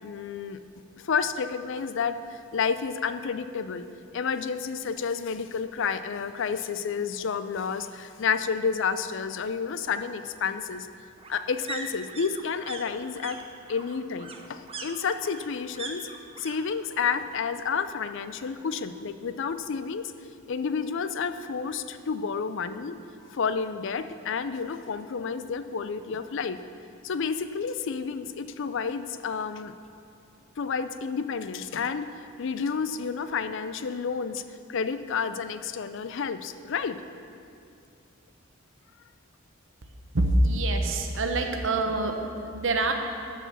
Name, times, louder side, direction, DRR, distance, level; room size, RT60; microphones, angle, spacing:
voice 1, 0.0-0.6 1.0-3.8 4.1-10.9 11.3-13.4 13.7-16.1 16.4-20.1 20.5-23.0 23.3-26.6 27.0-29.7 30.6-32.1 32.4-34.4 34.7-37.0, left 6 dB, 65° left, 11 dB, 0.5 m, -30 dB
sound 1, 5.7-5.8 6.1-6.2 6.5-7.5 8.8-16.6 16.8-17.4 17.7-18.7 19.0-19.1, right 3 dB, 30° right, 0.8 m, -43 dB
voice 2, 40.1-42.9, right 2 dB, 65° right, 4 dB, 1.0 m, -25 dB
12.5 x 4.9 x 7.0 m, 2.5 s
head